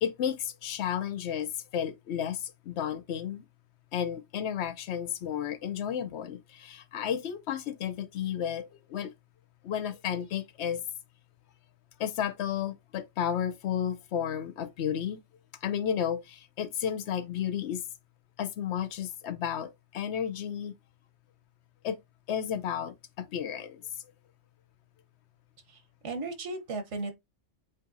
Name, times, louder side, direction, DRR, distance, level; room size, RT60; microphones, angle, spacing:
voice 1, 0.0-3.4 3.9-9.1 9.6-10.8 12.0-15.2 15.6-17.8 18.4-20.7 21.8-22.0 22.3-22.9 23.3-23.8, left 9 dB, 75° left, 0.9 m, -32 dB
voice 2, 25.7-27.1, right 3 dB, 85° right, 1.3 m, -36 dB
7.7 x 2.6 x 2.6 m
omnidirectional pair, 1.2 m